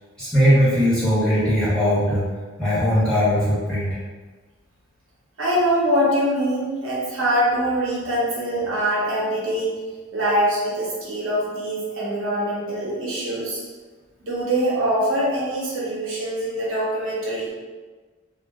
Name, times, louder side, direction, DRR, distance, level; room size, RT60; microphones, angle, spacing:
voice 1, 0.2-2.2 2.6-4.0, equal, 5° left, -12 dB, 1.1 m, -19 dB
voice 2, 5.4-9.7 10.1-13.6 14.3-17.5, equal, 70° right, -6 dB, 0.8 m, -23 dB
2.4 x 2.0 x 3.3 m, 1.4 s
head